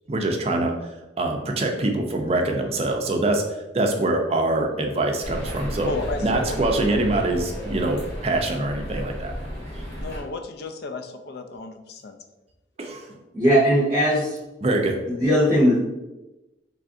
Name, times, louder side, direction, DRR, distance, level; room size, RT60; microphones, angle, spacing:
voice 1, 0.1-5.9 6.2-9.3 9.7-9.8 12.8-13.1 14.6-15.0, right 2 dB, 35° right, 3 dB, 0.4 m, -24 dB
sound 1, 5.2-10.2, equal, 80° left, 1.4 m, -33 dB
voice 2, 5.9-6.2 6.5-6.6 6.9-7.1 10.0-12.2, left 2 dB, 55° left, 6 dB, 0.4 m, -33 dB
voice 3, 13.3-14.4 15.1-15.8, equal, 15° right, -6 dB, 0.9 m, -19 dB
3.3 x 2.5 x 3.6 m, 1.0 s
head